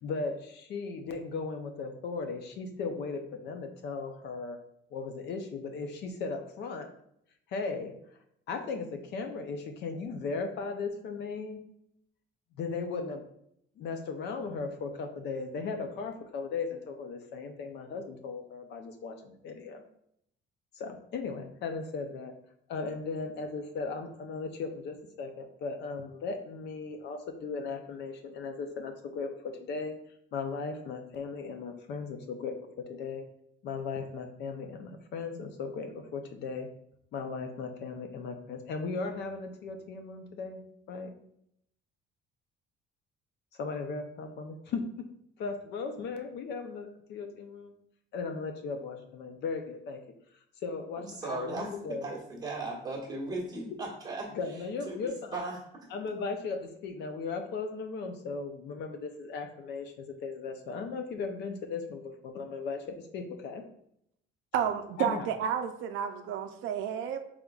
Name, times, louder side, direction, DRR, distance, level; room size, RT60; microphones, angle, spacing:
voice 1, 0.0-4.6 4.9-6.9 7.5-8.0 8.5-11.6 12.6-13.3 13.8-19.8 20.7-22.3 22.7-29.9 30.3-33.3 33.6-36.7 37.1-40.6 40.9-41.1 43.6-45.1 45.4-47.7 48.1-50.0 50.6-52.1 54.3-55.4 55.9-63.6 65.0-65.3, left 4 dB, 55° left, 6 dB, 0.6 m, -37 dB
voice 2, 51.0-51.7 52.0-54.3 54.8-55.6, right 3 dB, 20° right, -3 dB, 1.1 m, -37 dB
voice 3, 64.5-67.2, right 8 dB, 75° right, 7 dB, 0.4 m, -31 dB
5.2 x 3.5 x 2.3 m, 0.73 s
cardioid pair, 175°, 21 cm